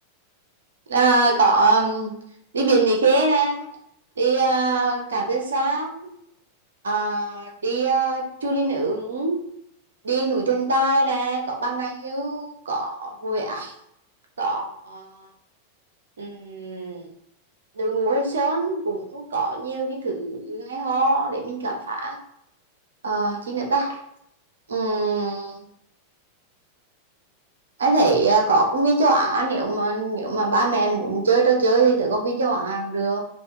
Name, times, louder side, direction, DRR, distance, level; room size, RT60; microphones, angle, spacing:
voice 1, 0.9-2.1 2.5-3.7 4.2-6.1 6.8-9.4 10.0-13.7 14.4-15.1 16.2-17.1 17.8-22.2 23.0-24.0 24.7-25.7 27.8-33.2, right 3 dB, 70° right, 2 dB, 1.0 m, -22 dB
5.2 x 2.6 x 3.2 m, 0.73 s
figure-of-eight pair, 90°, 0 cm